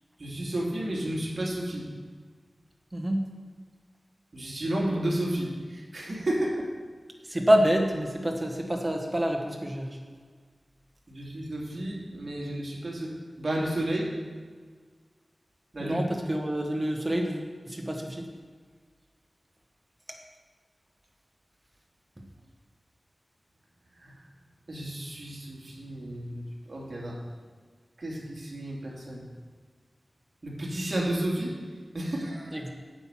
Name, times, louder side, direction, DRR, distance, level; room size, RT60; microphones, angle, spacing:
voice 1, 0.2-1.8 4.3-6.7 11.1-13.1 13.4-14.1 15.7-16.0 24.0-24.1 24.7-27.2 28.0-29.2 30.4-31.5 31.9-32.6, right 1 dB, 50° right, -3 dB, 2.8 m, -32 dB
voice 2, 2.9-3.2 7.3-9.9 15.8-18.3 32.5-32.7, equal, 20° right, 2 dB, 1.7 m, -27 dB
9.1 x 8.1 x 5.9 m, 1.5 s
wide cardioid pair, 60°, 0 cm